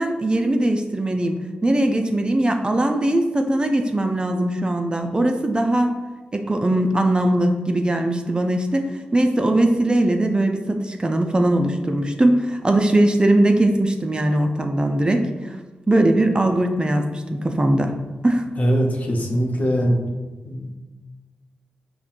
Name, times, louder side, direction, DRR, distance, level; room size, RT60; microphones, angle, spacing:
voice 1, 0.0-6.0 6.3-15.6 15.9-18.4, right 1 dB, 25° right, 5 dB, 0.4 m, -20 dB
voice 2, 18.6-20.1 20.4-20.8, equal, 50° left, 0 dB, 0.7 m, -21 dB
5.6 x 2.2 x 2.5 m, 1.2 s
supercardioid pair, 40°, 3 cm